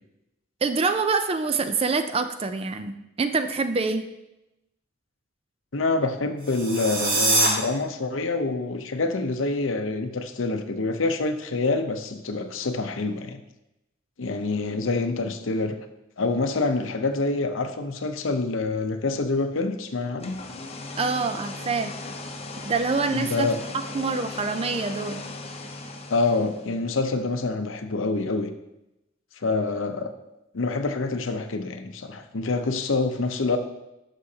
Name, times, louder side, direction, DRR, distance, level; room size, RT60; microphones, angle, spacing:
voice 1, 0.6-4.1 21.0-22.0 22.6-23.5 23.9-25.2, right 4 dB, 30° right, 9 dB, 0.4 m, -26 dB
voice 2, 5.7-13.4 14.2-15.8 16.2-20.4 23.1-23.6 26.1-28.5 29.4-30.1 30.5-33.6, left 3 dB, 85° left, 8 dB, 0.7 m, -26 dB
sound 1, 6.4-7.5, right 2 dB, 45° right, 1.9 m, -23 dB
sound 2, 20.0-26.8, left 2 dB, 30° left, 0.7 m, -38 dB
11.5 x 6.3 x 2.8 m, 0.93 s
head